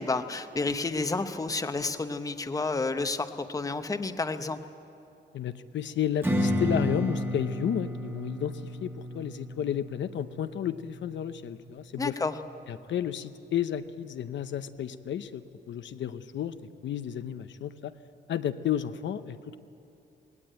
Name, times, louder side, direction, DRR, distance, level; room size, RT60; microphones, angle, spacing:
voice 1, 0.0-4.6 12.0-12.3, left 3 dB, 20° left, 9 dB, 0.8 m, -30 dB
voice 2, 5.3-12.2 12.7-16.5 16.8-17.9 18.3-19.6, left 10 dB, 75° left, 10 dB, 0.7 m, -32 dB
Strum, 6.2-11.4, equal, 10° right, 1.4 m, -32 dB
20.0 x 18.0 x 8.9 m, 2.7 s
wide cardioid pair, 140°, 19 cm